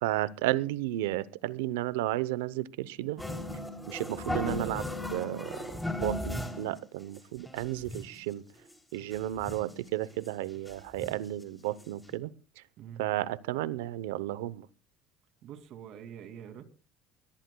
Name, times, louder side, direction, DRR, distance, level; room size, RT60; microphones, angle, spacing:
voice 1, 0.0-3.3 3.9-8.4 8.9-12.3 12.6-12.7 13.0-14.7, right 15 dB, 90° right, 19 dB, 0.7 m, -33 dB
sound 1, 3.2-6.8 7.1-7.2 7.5-8.2 8.7-8.8 9.0-9.8 10.2-10.3 10.7-11.3 11.8-11.9 12.1-12.2, left 1 dB, 5° left, 3.1 m, -36 dB
voice 2, 15.4-16.6, right 9 dB, 60° right, 9 dB, 2.5 m, -45 dB
23.5 x 17.5 x 2.3 m, 0.36 s
supercardioid pair, 95°, 0 cm